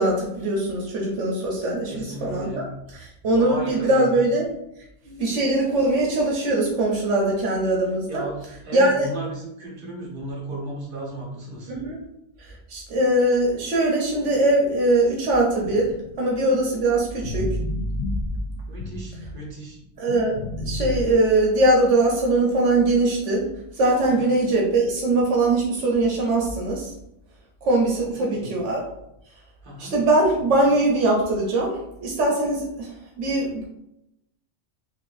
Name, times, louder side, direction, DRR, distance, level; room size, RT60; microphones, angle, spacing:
voice 1, 0.0-2.6 2.9-4.4 5.0-8.2 8.7-9.1 11.7-12.0 12.4-15.9 16.2-17.5 20.0-23.5 23.7-26.9 27.6-28.8 29.8-33.7, right 2 dB, 80° right, -1 dB, 1.1 m, -21 dB
voice 2, 1.9-2.6 3.3-4.1 8.1-8.4 8.6-11.7 18.7-19.8 24.1-24.3 27.9-28.5 29.6-29.9, right 1 dB, 45° right, -4 dB, 1.1 m, -34 dB
sound 1, 15.3-19.6 20.1-21.0, left 1 dB, 55° left, 0.4 m, -31 dB
4.0 x 2.5 x 2.5 m, 0.81 s
omnidirectional pair, 1.2 m